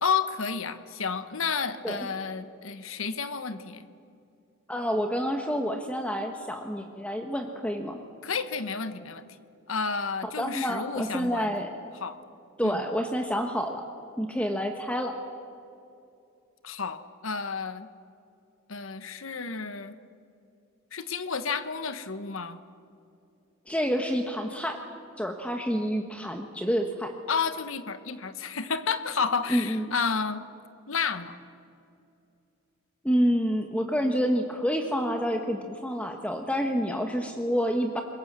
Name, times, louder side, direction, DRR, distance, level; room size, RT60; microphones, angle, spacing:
voice 1, 0.0-3.9 8.2-9.4 9.7-11.5 12.0-12.2 12.6-12.8 16.6-17.9 18.7-20.0 20.9-22.6 27.3-30.4 30.9-31.4, left 5 dB, 70° left, 11 dB, 1.2 m, -31 dB
voice 2, 4.7-8.0 10.4-11.7 12.6-13.8 14.2-15.2 23.7-24.8 25.2-27.1 29.5-29.9 33.0-38.0, equal, 5° left, 4 dB, 1.2 m, -28 dB
27.0 x 22.0 x 7.5 m, 2.6 s
head